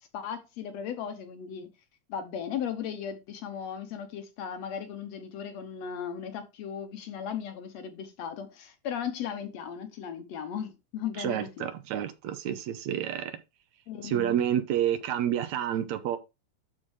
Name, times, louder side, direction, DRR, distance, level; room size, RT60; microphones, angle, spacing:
voice 1, 0.1-1.7 2.1-11.7 13.9-14.4, left 8 dB, 70° left, 1.9 m, -36 dB
voice 2, 11.2-13.4 14.0-16.2, right 10 dB, 70° right, 2.0 m, -29 dB
12.5 x 4.4 x 3.2 m
omnidirectional pair, 3.5 m